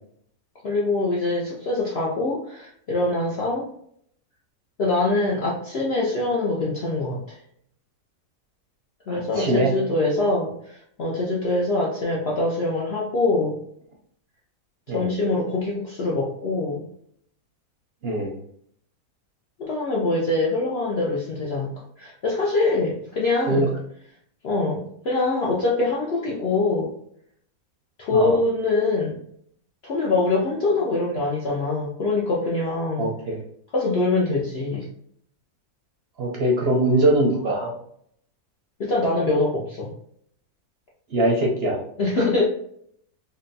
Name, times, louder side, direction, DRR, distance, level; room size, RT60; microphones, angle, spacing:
voice 1, 0.6-3.7 4.8-7.4 9.1-13.6 14.9-16.8 19.6-21.7 22.0-23.7 24.4-26.9 28.0-29.2 29.8-33.1 33.7-34.9 38.8-39.9 42.0-42.4, left 2 dB, 60° left, -4 dB, 0.7 m, -24 dB
voice 2, 9.1-9.7 14.9-15.1 18.0-18.3 23.5-23.7 28.1-28.4 33.0-33.4 36.2-37.7 41.1-41.8 42.1-42.3, right 1 dB, 55° right, -2 dB, 0.7 m, -22 dB
3.9 x 2.2 x 2.6 m, 0.67 s
omnidirectional pair, 1.6 m